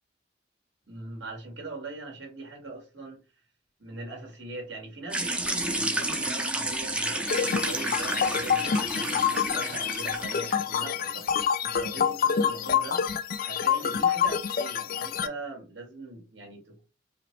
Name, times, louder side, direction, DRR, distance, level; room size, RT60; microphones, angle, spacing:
voice 1, 0.9-3.2 3.8-13.0 13.5-16.8, right 2 dB, 70° right, 1.9 m, -41 dB
sound 1, 5.1-10.7, right 1 dB, 5° right, 0.6 m, -31 dB
sound 2, 7.3-15.3, left 7 dB, 50° left, 0.3 m, -27 dB
4.9 x 2.1 x 3.2 m
head